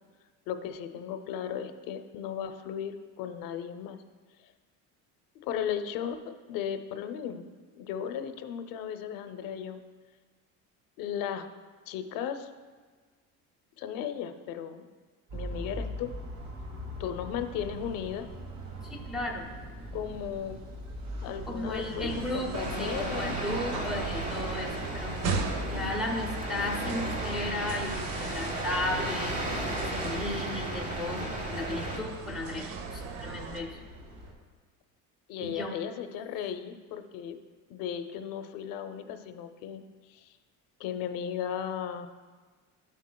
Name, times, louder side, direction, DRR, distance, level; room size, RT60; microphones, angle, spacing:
voice 1, 0.5-4.0 5.4-9.8 11.0-11.5 11.9-12.5 13.8-14.8 15.3-16.1 17.0-18.3 19.9-20.6 21.2-24.1 35.3-37.4 37.7-39.8 40.1-40.4 40.8-42.1, left 8 dB, 75° left, 8 dB, 0.6 m, -36 dB
sound 1, 15.3-34.3, equal, 55° right, 1.3 m, -41 dB
voice 2, 18.8-19.5 21.5-29.3 29.9-33.8 35.4-35.7, left 1 dB, ahead, -2 dB, 0.5 m, -35 dB
sound 2, 22.1-33.6, right 5 dB, 85° right, 0.9 m, -38 dB
sound 3, 22.5-32.0, right 1 dB, 20° right, 0.9 m, -35 dB
12.5 x 7.3 x 2.2 m, 1.5 s
cardioid pair, 180°, 34 cm